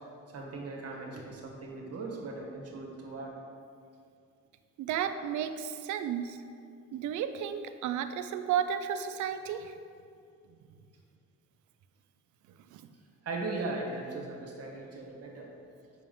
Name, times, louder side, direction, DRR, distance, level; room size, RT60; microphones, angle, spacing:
voice 1, 0.3-3.3 13.2-15.5, right 3 dB, 55° right, -1 dB, 1.3 m, -38 dB
voice 2, 4.8-6.4 6.9-9.7 12.7-12.8, right 9 dB, 75° right, 10 dB, 0.5 m, -33 dB
7.0 x 5.8 x 3.8 m, 2.4 s
cardioid pair, 90°, 30 cm